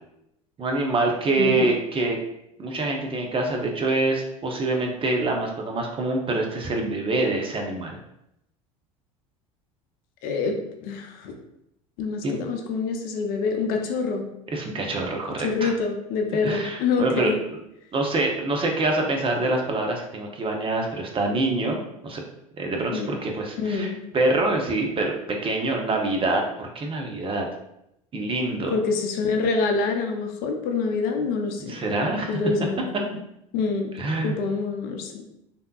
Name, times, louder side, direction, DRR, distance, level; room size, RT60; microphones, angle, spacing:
voice 1, 0.6-2.2 2.6-8.0 12.2-12.4 14.5-15.7 16.4-17.3 17.9-22.2 22.6-25.1 25.4-27.5 28.1-28.7 31.6-32.4 34.0-34.4, right 2 dB, 30° right, 1 dB, 0.7 m, -25 dB
voice 2, 1.4-1.7 10.2-11.3 12.0-14.3 15.4-17.4 22.9-23.2 23.5-24.0 28.7-31.8 32.3-33.0 33.5-33.9 34.2-35.3, left 4 dB, 55° left, 4 dB, 0.6 m, -26 dB
3.4 x 2.7 x 2.3 m, 0.80 s
hypercardioid pair, 75°, 18 cm